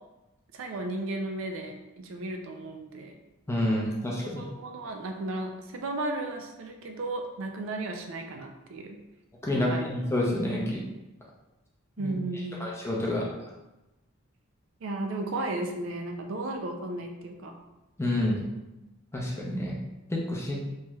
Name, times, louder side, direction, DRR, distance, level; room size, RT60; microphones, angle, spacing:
voice 1, 0.5-3.1 4.4-9.0 9.5-9.9 12.0-12.7 14.8-17.5, right 2 dB, 65° right, 3 dB, 0.4 m, -34 dB
voice 2, 3.5-4.4 9.4-10.8 12.0-12.1 12.6-13.2 18.0-18.4 19.1-19.7 20.1-20.6, left 1 dB, 10° left, -3 dB, 0.4 m, -28 dB
3.1 x 2.9 x 2.2 m, 1.0 s
head